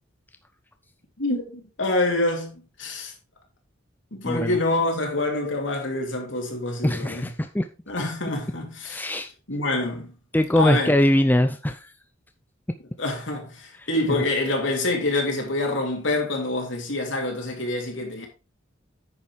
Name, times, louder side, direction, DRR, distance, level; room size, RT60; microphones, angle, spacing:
voice 1, 1.2-3.1 4.1-7.3 7.9-9.0 9.5-10.1 10.5-10.9 13.0-18.3, left 2 dB, 70° left, 3.0 m, -26 dB
voice 2, 4.2-4.6 6.8-7.7 8.0-8.1 8.8-9.3 10.3-11.9, left 1 dB, 10° left, 0.6 m, -22 dB
9.7 x 6.8 x 3.6 m
head